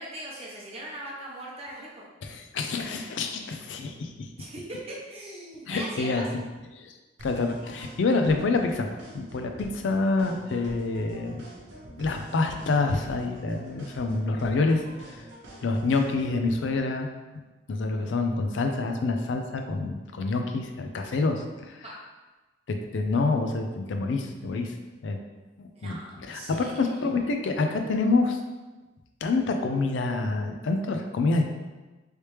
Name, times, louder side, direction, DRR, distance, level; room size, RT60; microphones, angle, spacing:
voice 1, 0.0-2.1 4.4-6.2 21.8-22.0 25.7-26.7, right 1 dB, 30° right, -4 dB, 0.8 m, -40 dB
voice 2, 2.2-4.3 5.7-6.4 6.7-6.9 7.2-8.9 9.1-11.4 12.0-15.2 15.6-17.1 17.7-21.8 22.7-24.7 25.0-25.2 25.6-26.0 26.3-28.4 29.2-31.4, left 3 dB, 70° left, 5 dB, 0.4 m, -27 dB
sound 1, 7.2-16.8, right 1 dB, 70° right, 0.9 m, -46 dB
3.2 x 2.9 x 3.2 m, 1.2 s
head